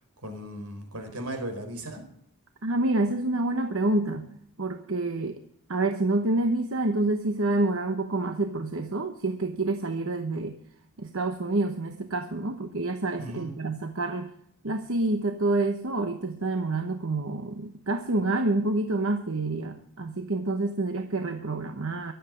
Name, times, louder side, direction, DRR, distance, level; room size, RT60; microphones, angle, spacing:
voice 1, 0.2-2.0 13.2-13.5, right 1 dB, 85° right, 5 dB, 4.5 m, -36 dB
voice 2, 2.6-4.3 4.6-5.4 5.7-10.6 11.0-14.3 14.6-22.1, right 2 dB, 65° right, 6 dB, 1.0 m, -28 dB
23.0 x 8.0 x 5.1 m, 0.72 s
head